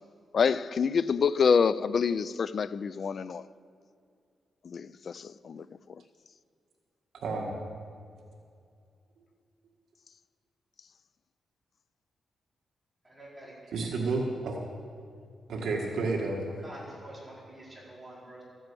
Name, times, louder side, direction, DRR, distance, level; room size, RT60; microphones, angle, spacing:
voice 1, 0.3-3.5 4.6-5.7, left 6 dB, 40° left, 0.4 m, -27 dB
voice 2, 7.2-7.5 13.7-14.6 15.5-16.4, right 3 dB, 70° right, 1.7 m, -30 dB
voice 3, 13.0-13.7 16.6-18.4, right 1 dB, 10° right, 4.3 m, -47 dB
13.5 x 9.0 x 7.7 m
wide cardioid pair, 175°, 0 cm